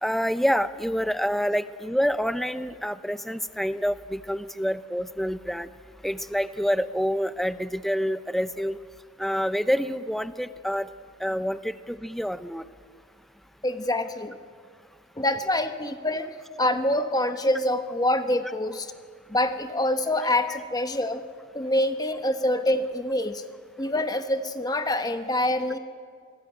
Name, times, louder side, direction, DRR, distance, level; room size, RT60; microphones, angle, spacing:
voice 1, 0.0-5.7 6.0-8.8 9.2-10.9 11.2-12.6, equal, ahead, 13 dB, 0.6 m, -27 dB
voice 2, 13.6-14.4 15.2-18.9 19.3-21.2 21.5-23.4 23.8-25.8, left 1 dB, 20° left, 8 dB, 1.0 m, -26 dB
27.0 x 19.0 x 9.1 m, 2.1 s
head